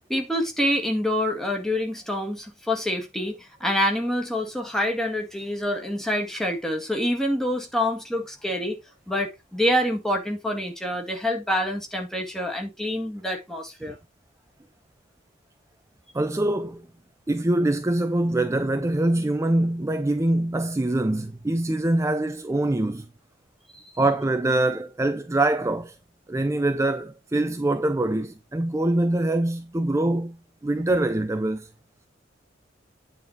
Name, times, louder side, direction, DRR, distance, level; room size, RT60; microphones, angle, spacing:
voice 1, 0.1-8.8 9.1-14.0 23.7-23.8, left 1 dB, ahead, 1.9 m, -26 dB
voice 2, 16.1-16.9 17.3-23.1 24.0-26.0 26.3-30.4 30.6-31.7, right 1 dB, 15° right, 0.5 m, -24 dB
9.3 x 4.3 x 4.7 m
head